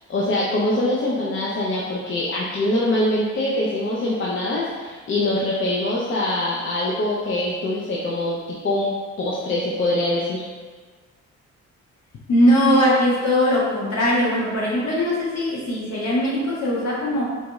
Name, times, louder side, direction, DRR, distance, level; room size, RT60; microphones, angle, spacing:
voice 1, 0.1-10.4, left 1 dB, 40° left, -5 dB, 0.6 m, -23 dB
voice 2, 12.3-17.2, equal, 60° left, -6 dB, 1.3 m, -20 dB
4.0 x 2.4 x 3.0 m, 1.5 s
cardioid pair, 90°, 30 cm